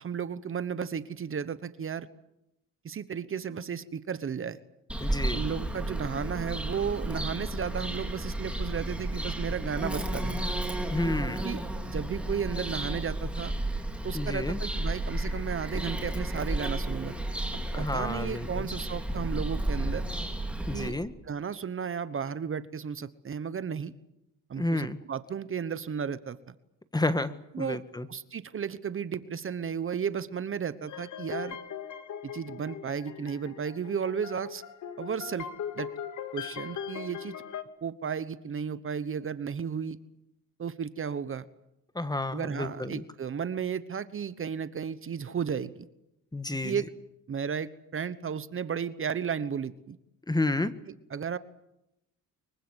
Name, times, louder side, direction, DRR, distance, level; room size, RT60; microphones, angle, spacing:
voice 1, 0.0-2.1 2.8-4.6 5.3-10.4 11.4-11.6 11.9-13.5 14.0-17.2 17.8-20.0 20.7-21.0 21.2-23.9 24.5-26.4 27.5-27.8 28.1-31.6 32.2-34.6 35.0-35.5 35.7-35.9 36.3-37.4 37.8-40.0 40.6-41.4 42.3-45.9 46.6-46.9 47.3-50.0 51.1-51.4, right 7 dB, 40° right, 14 dB, 1.1 m, -34 dB
Bird vocalization bird call bird song, 4.9-20.9, right 1 dB, 5° right, 3.6 m, -32 dB
voice 2, 5.0-5.4 10.9-11.4 14.1-14.6 17.7-18.7 20.7-21.1 24.6-25.0 26.9-28.1 41.9-43.0 46.3-46.7 50.3-50.7, left 2 dB, 10° left, 12 dB, 1.4 m, -30 dB
sound 1, 30.9-37.6, left 8 dB, 60° left, 2.0 m, -40 dB
24.5 x 23.0 x 8.1 m, 0.88 s
cardioid pair, 110°, 33 cm